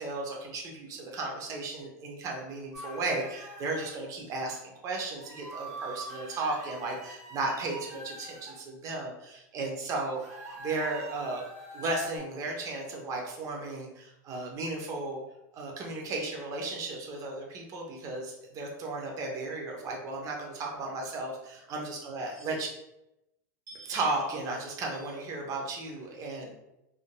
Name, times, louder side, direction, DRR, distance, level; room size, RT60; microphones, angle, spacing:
voice 1, 0.0-10.2 10.6-11.4 11.7-15.2 15.5-22.7 23.7-26.5, right 2 dB, 35° right, 0 dB, 0.8 m, -35 dB
sound 1, 2.7-3.9 5.2-8.5 10.1-12.2, right 2 dB, 70° right, 1.0 m, -44 dB
3.6 x 2.6 x 2.2 m, 0.89 s
supercardioid pair, 120°, 9 cm